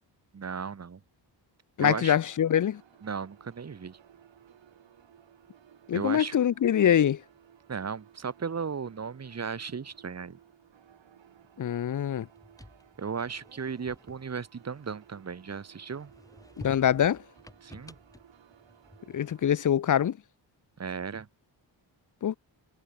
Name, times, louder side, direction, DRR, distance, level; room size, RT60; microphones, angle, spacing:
voice 1, 0.3-1.0 1.8-2.2 3.0-4.0 5.9-6.3 7.7-10.4 13.0-16.1 17.6-17.9 20.8-21.3, right 6 dB, 35° right, 1.7 m, -35 dB
voice 2, 1.8-2.8 5.9-7.2 11.6-12.3 16.6-17.2 19.1-20.2 22.2-22.4, left 9 dB, 45° left, 0.6 m, -24 dB
sound 1, 1.9-19.7, right 9 dB, 85° right, 4.8 m, -58 dB
sound 2, 12.3-15.4 15.9-19.3, left 1 dB, 10° left, 7.0 m, -52 dB
wide cardioid pair, 140°, 43 cm